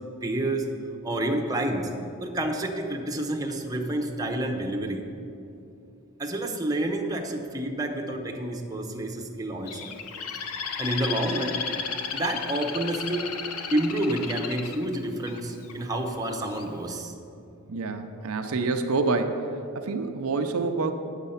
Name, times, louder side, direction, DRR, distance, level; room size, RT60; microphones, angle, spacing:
voice 1, 0.2-0.7 1.0-1.9 2.2-5.0 6.2-9.9 10.8-11.6 12.1-13.3 13.7-17.1, right 1 dB, 15° right, 2 dB, 0.8 m, -29 dB
Bird, 9.7-15.7 16.3-16.7, left 6 dB, 90° left, 0.7 m, -34 dB
voice 2, 17.7-19.4 19.7-20.9, right 3 dB, 70° right, 6 dB, 0.6 m, -27 dB
9.0 x 7.3 x 5.6 m, 2.7 s
head